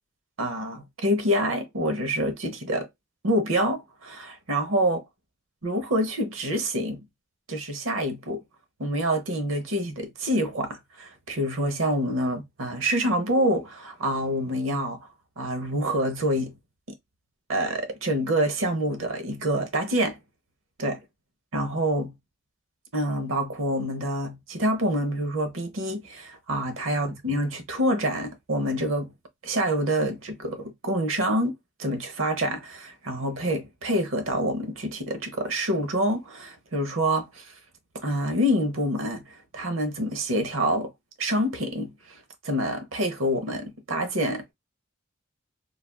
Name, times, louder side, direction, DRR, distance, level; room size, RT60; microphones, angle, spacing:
voice 1, 0.4-2.9 3.2-5.0 5.6-7.0 7.5-8.4 8.8-15.1 15.4-16.5 17.5-20.2 20.8-21.0 21.5-22.1 22.9-29.1 29.4-37.5 38.0-39.2 39.5-40.9 41.2-42.2 42.4-44.4, equal, 80° right, 0.8 m, -27 dB
3.3 x 2.3 x 2.2 m
head